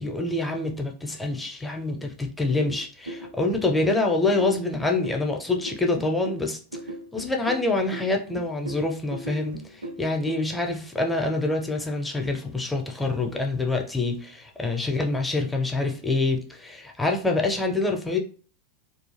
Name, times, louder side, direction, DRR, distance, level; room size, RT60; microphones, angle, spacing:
voice 1, 0.0-6.6 7.1-18.2, left 2 dB, 10° left, 0.5 m, -26 dB
sound 1, 2.7-10.3, right 1 dB, 75° right, 0.4 m, -38 dB
2.4 x 2.1 x 3.1 m
figure-of-eight pair, 90°, 0 cm